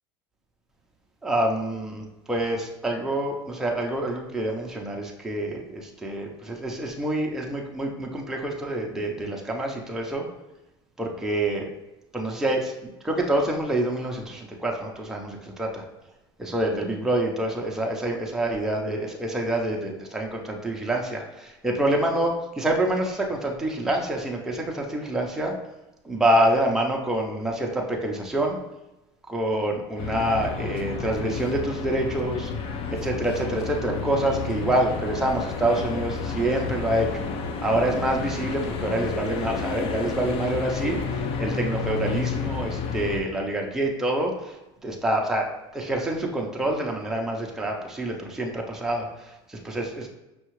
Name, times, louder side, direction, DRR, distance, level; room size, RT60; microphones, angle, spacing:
voice 1, 1.2-10.3 11.0-11.7 12.1-15.8 16.4-25.6 26.0-28.6 29.3-32.5 32.9-37.3 37.6-50.1, right 1 dB, 5° right, 0 dB, 0.6 m, -27 dB
sound 1, 30.0-43.2, left 5 dB, 45° left, 0.5 m, -31 dB
5.4 x 2.4 x 3.1 m, 0.96 s
supercardioid pair, 120°, 13 cm